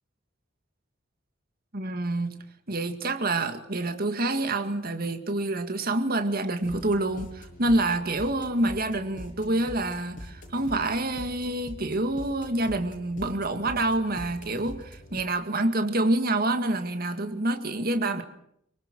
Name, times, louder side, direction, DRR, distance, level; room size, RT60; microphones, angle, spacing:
voice 1, 1.7-2.4 2.7-18.2, right 2 dB, 50° right, 7 dB, 2.1 m, -27 dB
sound 1, 6.6-15.2, left 1 dB, 40° left, 7.3 m, -44 dB
25.5 x 24.0 x 6.4 m, 0.72 s
head